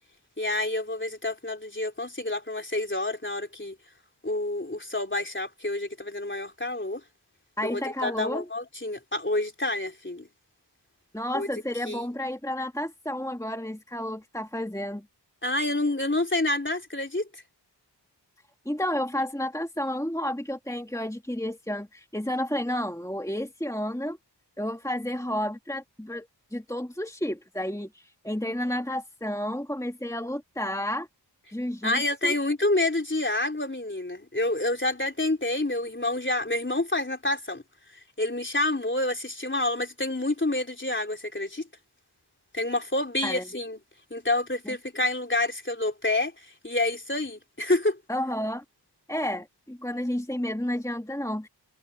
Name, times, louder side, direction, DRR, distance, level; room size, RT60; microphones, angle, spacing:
voice 1, 0.4-3.8 4.2-7.0 7.6-10.3 11.3-11.5 11.9-12.0 15.4-17.4 31.8-37.6 38.2-41.6 42.5-43.8 44.1-48.0, left 2 dB, 25° left, 3.7 m, -28 dB
voice 2, 7.6-8.5 11.1-15.0 18.7-24.2 24.6-26.3 26.5-31.1 31.5-32.3 43.2-43.4 44.7-44.8 48.1-48.6 49.1-51.5, left 1 dB, 5° left, 2.2 m, -31 dB
wide cardioid pair, 65°, 43 cm